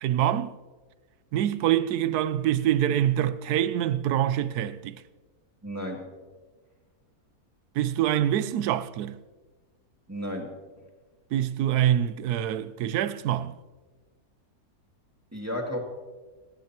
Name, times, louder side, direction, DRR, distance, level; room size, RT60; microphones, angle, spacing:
voice 1, 0.0-0.5 1.3-5.0 7.8-9.2 11.3-13.5, right 11 dB, 80° right, 1.2 m, -25 dB
voice 2, 5.6-6.0 10.1-10.5 15.3-15.8, equal, 10° right, 2.4 m, -32 dB
29.5 x 10.5 x 2.9 m
omnidirectional pair, 1.6 m